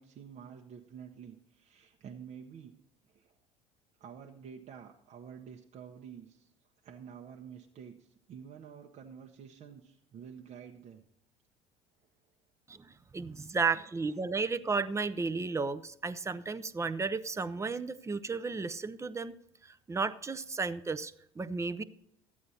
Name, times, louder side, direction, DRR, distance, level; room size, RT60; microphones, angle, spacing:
voice 1, 0.0-2.7 3.1-3.3 4.0-6.5 6.8-11.0, right 7 dB, 50° right, 2 dB, 0.9 m, -49 dB
voice 2, 12.7-19.3 19.6-21.8, right 4 dB, 20° right, 13 dB, 0.6 m, -33 dB
12.5 x 8.4 x 4.2 m, 0.76 s
hypercardioid pair, 80°, 15 cm